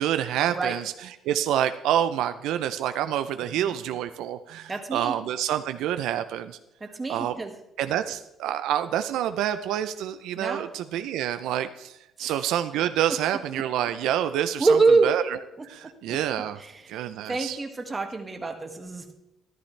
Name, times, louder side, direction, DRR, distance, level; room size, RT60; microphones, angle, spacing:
voice 1, 0.0-6.6 7.1-7.3 7.8-14.8 15.0-15.2 15.6-16.6 16.9-17.6, right 11 dB, 90° right, 10 dB, 0.5 m, -27 dB
voice 2, 4.7-5.1 6.8-7.5 10.3-10.7 12.2-12.3 14.6-15.1 16.1-16.2 16.6-17.0 17.3-19.1, right 4 dB, 25° right, 5 dB, 1.5 m, -25 dB
13.5 x 11.5 x 3.3 m, 0.87 s
cardioid pair, 100°, 0 cm